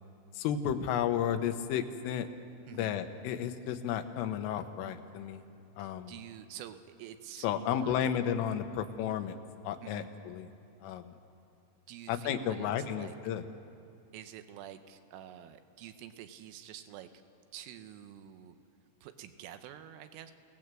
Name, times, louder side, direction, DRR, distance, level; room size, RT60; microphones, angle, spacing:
voice 1, 0.4-2.3 2.7-5.4 5.8-6.1 7.4-9.4 9.7-10.5 10.8-11.2 12.1-13.4, left 9 dB, 85° left, 8 dB, 3.7 m, -33 dB
voice 2, 5.8-8.0 9.8-10.1 11.9-13.2 14.1-17.1 17.5-18.6 19.0-20.3, right 11 dB, 85° right, 9 dB, 3.5 m, -48 dB
29.0 x 18.0 x 7.6 m, 2.7 s
omnidirectional pair, 5.7 m